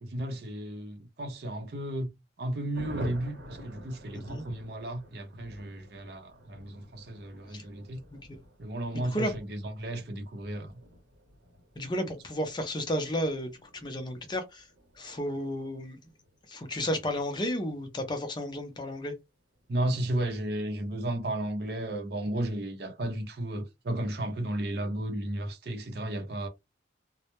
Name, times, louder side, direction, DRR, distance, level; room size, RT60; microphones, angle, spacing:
voice 1, 0.0-2.1 2.4-8.0 8.6-10.7 19.7-26.5, right 1 dB, 60° right, 0.6 m, -34 dB
Thunder, 2.7-18.9 19.1-19.2 19.5-19.7 19.9-20.3, left 1 dB, 85° right, 0.9 m, -49 dB
voice 2, 8.9-9.3 11.8-14.6 15.0-16.0 16.5-19.1, equal, 25° left, 0.4 m, -32 dB
2.1 x 2.0 x 2.9 m
head